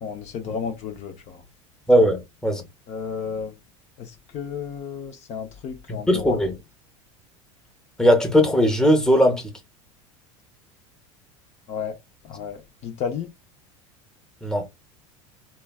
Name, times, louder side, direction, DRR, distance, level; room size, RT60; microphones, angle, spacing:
voice 1, 0.0-1.4 2.9-3.5 4.0-6.4 11.7-12.0 12.2-13.3, left 6 dB, 45° left, 0.7 m, -32 dB
voice 2, 1.9-2.6 5.9-6.5 8.0-9.5 14.4-14.7, equal, 5° left, 0.9 m, -19 dB
3.1 x 2.3 x 2.3 m
hypercardioid pair, 95°, 16 cm